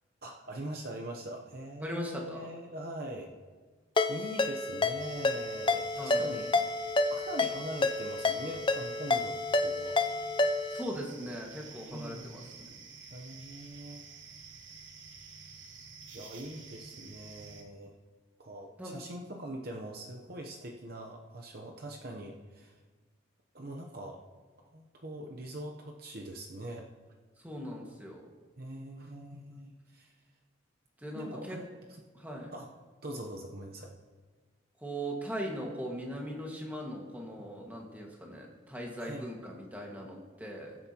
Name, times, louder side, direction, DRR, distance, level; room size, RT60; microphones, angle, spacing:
voice 1, 0.2-3.3 4.1-10.0 11.9-12.5 13.1-14.0 16.1-17.9 18.4-22.8 23.5-24.2 24.7-26.9 28.6-30.1 31.1-31.7 32.5-32.7 33.0-33.9 39.0-39.3, right 1 dB, 50° right, 1 dB, 0.8 m, -42 dB
voice 2, 1.8-2.5 6.0-6.3 10.7-12.7 18.8-18.9 27.4-28.2 31.0-31.6 32.1-32.5 34.8-40.8, equal, 10° right, -1 dB, 1.7 m, -39 dB
Ringtone, 4.0-10.8, left 3 dB, 25° left, 0.5 m, -29 dB
sound 1, 5.0-17.6, right 5 dB, 75° right, 1.4 m, -50 dB
21.0 x 8.2 x 2.9 m, 1.4 s
head